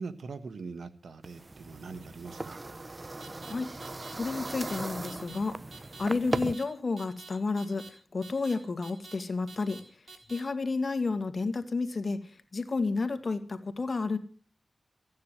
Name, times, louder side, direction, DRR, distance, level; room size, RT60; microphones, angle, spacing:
voice 1, 0.0-2.6, right 4 dB, 85° right, 1.2 m, -42 dB
sound 1, 1.2-6.5, right 2 dB, 40° right, 0.7 m, -38 dB
sound 2, 3.2-3.5 3.8-4.1 4.5-4.8 5.1-5.4 5.7-6.0 6.3-6.6 7.0-7.3 7.6-7.9 8.2-8.5 8.8-9.2 9.5-9.8 10.1-10.4, right 4 dB, 60° right, 3.9 m, -48 dB
voice 2, 4.1-5.6 6.0-9.8 10.3-12.2 12.5-14.2, left 3 dB, 55° left, 2.0 m, -31 dB
14.5 x 9.4 x 8.2 m
cardioid pair, 50°, 0 cm